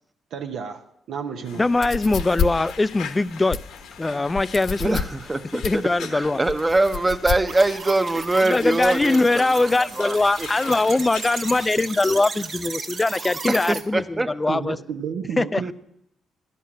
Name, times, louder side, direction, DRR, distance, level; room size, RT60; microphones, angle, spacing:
voice 1, 0.3-1.6 14.5-15.7, right 6 dB, 75° right, 4 dB, 0.8 m, -31 dB
sound 1, 1.4-11.7, left 7 dB, 85° left, 1.1 m, -42 dB
voice 2, 1.6-3.6 4.0-5.0 5.5-6.4 8.4-14.8 15.4-15.6, left 2 dB, 25° left, 18 dB, 0.4 m, -22 dB
sound 2, 1.7-9.0, left 6 dB, 65° left, 0.6 m, -30 dB
voice 3, 4.8-5.8 6.1-9.5 9.8-10.5 13.5-14.3, right 2 dB, 20° right, 10 dB, 0.8 m, -23 dB
sound 3, 7.5-13.8, right 4 dB, 55° right, 1.3 m, -35 dB
11.0 x 5.6 x 8.7 m, 0.78 s
supercardioid pair, 60°, 0 cm